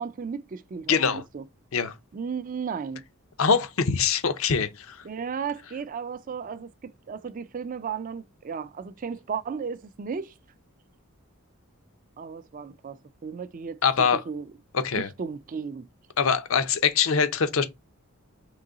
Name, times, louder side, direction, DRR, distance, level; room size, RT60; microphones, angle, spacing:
voice 1, 0.0-1.4 2.1-3.0 5.0-10.3 12.2-13.8 14.1-14.5 15.0-15.9, right 6 dB, 35° right, 0.3 m, -34 dB
voice 2, 0.9-1.2 1.7-1.9 3.4-5.0 13.8-14.2 14.7-15.1 16.2-17.6, left 6 dB, 65° left, 0.6 m, -23 dB
3.8 x 3.0 x 3.8 m
head